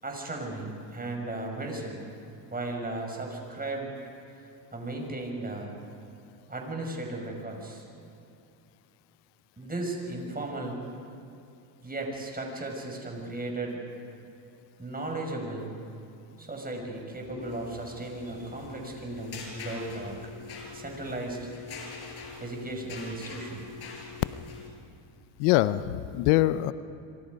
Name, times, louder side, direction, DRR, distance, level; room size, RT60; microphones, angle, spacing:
voice 1, 0.0-2.0 2.5-3.9 4.7-5.7 6.5-7.8 9.6-10.8 11.8-13.8 14.8-15.7 16.4-20.3 20.7-21.5 22.4-23.6, right 2 dB, 15° right, 2 dB, 6.2 m, -36 dB
sound 1, 17.2-24.7, left 4 dB, 50° left, 6.2 m, -43 dB
voice 2, 25.4-26.7, left 15 dB, 80° left, 14 dB, 0.8 m, -23 dB
26.0 x 25.5 x 5.4 m, 2.7 s
supercardioid pair, 90°, 50 cm